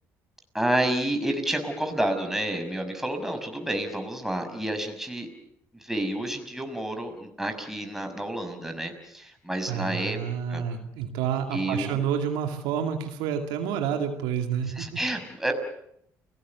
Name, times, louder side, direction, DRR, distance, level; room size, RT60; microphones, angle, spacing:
voice 1, 0.5-5.3 5.8-10.2 10.5-10.6 11.5-12.0 14.8-15.5, right 1 dB, 5° right, 5 dB, 5.7 m, -29 dB
voice 2, 9.7-15.0, right 8 dB, 80° right, 5 dB, 2.3 m, -29 dB
29.5 x 19.0 x 7.0 m, 0.74 s
hypercardioid pair, 60°, 8 cm